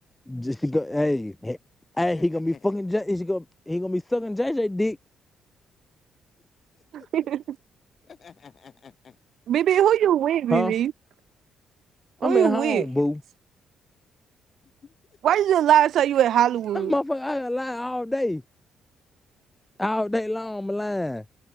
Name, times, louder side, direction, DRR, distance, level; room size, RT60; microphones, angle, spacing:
voice 1, 0.3-1.6 2.0-5.0 10.5-10.7 12.2-13.2 16.7-18.4 19.8-21.3, left 1 dB, 10° left, 1.1 m, -26 dB
voice 2, 2.1-2.7 6.7-7.1 8.0-9.2 14.6-14.9, left 6 dB, 45° left, 7.5 m, -50 dB
voice 3, 9.5-10.9 12.2-12.9 15.2-16.9, right 11 dB, 70° right, 0.3 m, -20 dB
cardioid pair, 90°, 0 cm